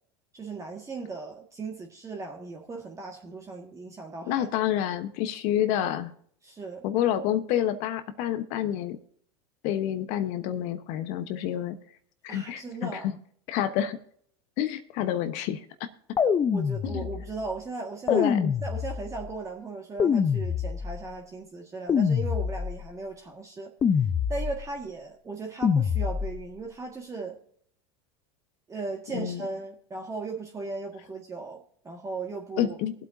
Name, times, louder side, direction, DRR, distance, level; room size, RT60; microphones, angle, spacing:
voice 1, 0.3-4.5 6.4-6.9 12.3-13.1 16.5-18.3 18.6-23.7 24.0-27.4 28.7-32.8, right 3 dB, 20° right, 1 dB, 1.8 m, -37 dB
voice 2, 4.3-6.1 6.8-9.0 9.6-11.8 12.2-13.2 13.5-14.0 14.6-15.9 16.8-17.1 18.1-18.5 29.1-29.4 32.6-32.9, left 11 dB, 60° left, 10 dB, 1.1 m, -28 dB
sound 1, 16.2-17.4 18.1-19.3 20.0-21.1 21.9-22.9 23.8-24.8 25.6-26.5, left 7 dB, 25° left, 0.7 m, -26 dB
22.0 x 8.2 x 2.7 m, 0.62 s
hypercardioid pair, 95°, 14 cm